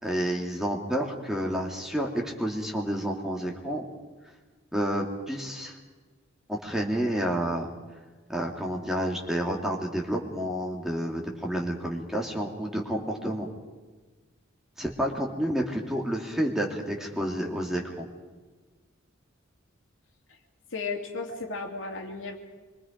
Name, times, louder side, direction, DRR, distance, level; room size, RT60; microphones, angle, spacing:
voice 1, 0.0-3.8 4.7-5.8 6.5-7.7 8.3-13.5 14.8-18.1, equal, ahead, 0 dB, 2.4 m, -30 dB
voice 2, 20.7-22.4, left 4 dB, 70° left, 3 dB, 2.7 m, -34 dB
25.5 x 23.5 x 5.2 m, 1.3 s
head